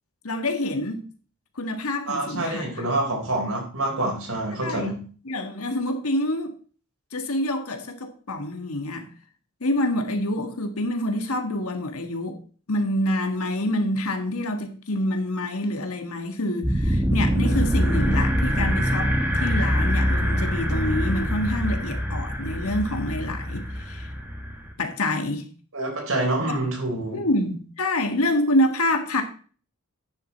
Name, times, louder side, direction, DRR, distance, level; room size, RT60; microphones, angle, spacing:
voice 1, 0.2-1.0 1.5-2.9 4.6-4.9 5.2-6.5 7.1-9.1 9.6-12.4 12.7-24.1 24.8-25.5 26.5-26.6 27.1-29.2, left 1 dB, 80° left, 1.5 m, -27 dB
voice 2, 2.1-5.0 25.7-27.2, right 2 dB, 70° right, 3.9 m, -27 dB
sound 1, 16.6-24.7, equal, 10° right, 1.2 m, -24 dB
10.0 x 7.1 x 4.2 m
head